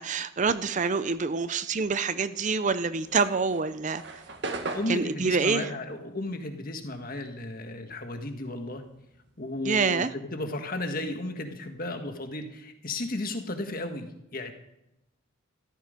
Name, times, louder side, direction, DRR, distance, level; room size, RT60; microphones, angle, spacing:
voice 1, 0.0-4.0 4.9-5.7 9.6-10.1, right 4 dB, 35° right, 13 dB, 0.5 m, -26 dB
sound 1, 3.0-7.7 8.0-10.0, right 3 dB, 55° right, 1.7 m, -39 dB
voice 2, 4.7-8.8 9.4-14.5, left 2 dB, 45° left, 6 dB, 1.6 m, -34 dB
14.0 x 13.0 x 5.2 m, 0.87 s
head